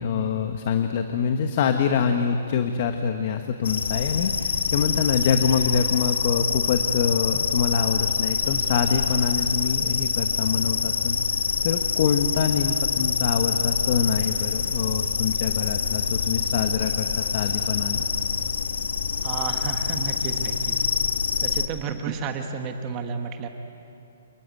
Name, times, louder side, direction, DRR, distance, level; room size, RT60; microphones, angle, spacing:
voice 1, 0.0-18.0, left 6 dB, 35° left, 6 dB, 1.3 m, -25 dB
sound 1, 3.6-21.7, left 6 dB, 85° left, 1.5 m, -26 dB
voice 2, 19.2-20.8 21.4-23.5, right 6 dB, 20° right, 5 dB, 1.3 m, -31 dB
27.5 x 21.5 x 9.2 m, 2.6 s
hypercardioid pair, 170°, 0 cm